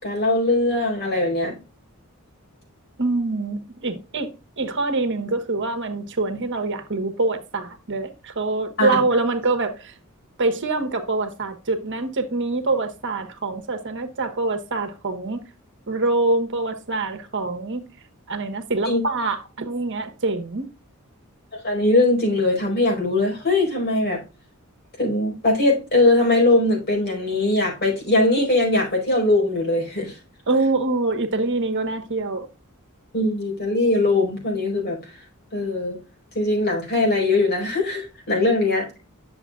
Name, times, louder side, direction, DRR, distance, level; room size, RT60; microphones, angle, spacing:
voice 1, 0.0-1.6 8.8-9.0 18.8-19.0 21.5-24.2 25.0-30.2 33.1-35.0 35.5-36.0 36.3-38.9, left 2 dB, 45° left, 4.7 m, -21 dB
voice 2, 3.0-9.9 10.4-15.4 15.9-17.8 18.3-20.7 30.5-32.5, right 3 dB, 55° right, 1.3 m, -25 dB
9.9 x 7.1 x 2.4 m
head